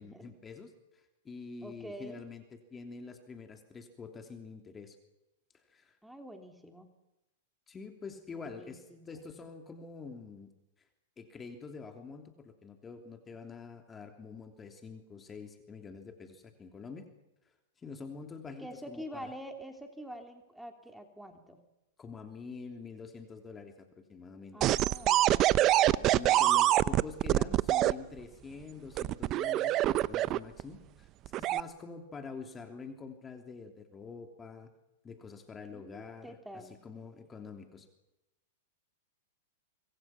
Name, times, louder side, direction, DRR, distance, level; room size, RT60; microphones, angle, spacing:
voice 1, 0.0-5.0 5.5-6.0 7.7-10.5 11.2-17.1 17.4-19.3 22.0-24.6 26.0-31.1 31.3-34.7 35.0-36.4 36.8-37.9, left 4 dB, 20° left, 5 dB, 3.1 m, -46 dB
voice 2, 1.6-2.2 6.0-6.9 8.6-9.2 18.6-21.6 24.5-25.6 25.9-26.5 35.7-36.7, equal, ahead, 4 dB, 3.3 m, -47 dB
sound 1, 24.6-27.9 29.0-30.6 31.3-31.6, right 14 dB, 35° right, 0.8 m, -25 dB
25.0 x 24.5 x 6.0 m, 0.94 s
hypercardioid pair, 115°, 0 cm